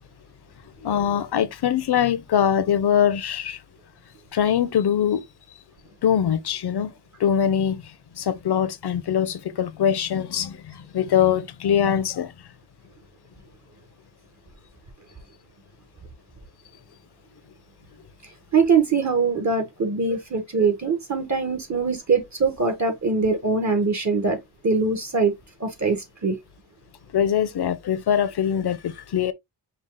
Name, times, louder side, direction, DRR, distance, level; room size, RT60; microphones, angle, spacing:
voice 1, 0.8-3.6 4.3-5.2 6.0-6.9 7.2-7.8 8.2-12.3 27.1-29.3, left 9 dB, 70° left, 0.7 m, -22 dB
voice 2, 18.2-24.4 24.6-25.3 25.6-26.4, right 4 dB, 40° right, 1.3 m, -22 dB
5.4 x 2.4 x 3.7 m
wide cardioid pair, 95°, 42 cm